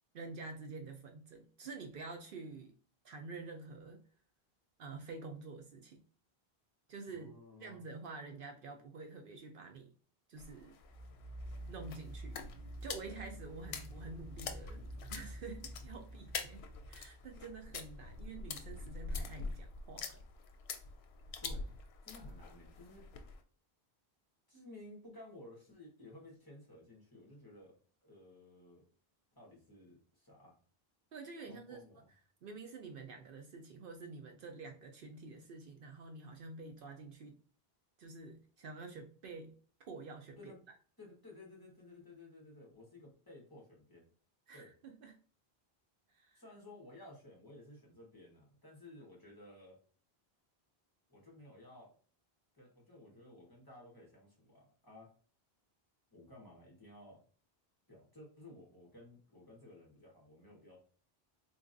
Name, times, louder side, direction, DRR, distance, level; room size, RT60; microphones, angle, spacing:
voice 1, 0.1-2.7 3.0-4.0 4.8-6.0 6.9-7.3 7.6-9.9 10.3-10.8 11.7-12.4 12.8-14.8 15.1-20.2 31.1-31.8 32.4-37.4 38.0-40.5 44.5-45.2 46.1-46.4, right 3 dB, 65° right, 4 dB, 0.7 m, -48 dB
voice 2, 7.1-7.8 21.4-21.7 22.0-23.1 24.5-28.8 29.3-30.5 31.5-32.1 40.4-40.6 41.0-44.0 44.5-44.7 46.3-49.8 51.1-51.9 52.5-55.1 56.1-57.2 57.9-60.8, left 1 dB, 20° left, -3 dB, 1.2 m, -55 dB
sound 1, 10.4-23.4, left 4 dB, 85° left, 0.8 m, -46 dB
sound 2, 10.8-18.1, right 1 dB, 85° right, 1.1 m, -49 dB
3.9 x 2.9 x 2.5 m, 0.42 s
omnidirectional pair, 1.0 m